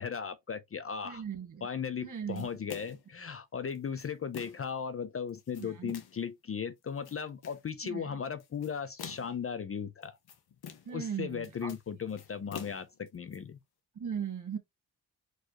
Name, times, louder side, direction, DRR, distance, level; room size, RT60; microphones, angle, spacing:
voice 1, 0.0-1.2 1.6-10.2 10.9-13.6, left 7 dB, 35° left, 0.5 m, -37 dB
voice 2, 1.0-1.7 2.0-2.5 5.6-5.9 7.8-8.1 10.9-11.7 13.9-14.6, right 8 dB, 45° right, 1.7 m, -38 dB
sound 1, 2.3-3.1 3.7-4.7 5.3-6.3 6.8-7.7 8.4-9.5 10.0-11.0 11.3-13.4, left 8 dB, 60° left, 1.1 m, -47 dB
4.4 x 3.1 x 3.0 m
supercardioid pair, 65°, 42 cm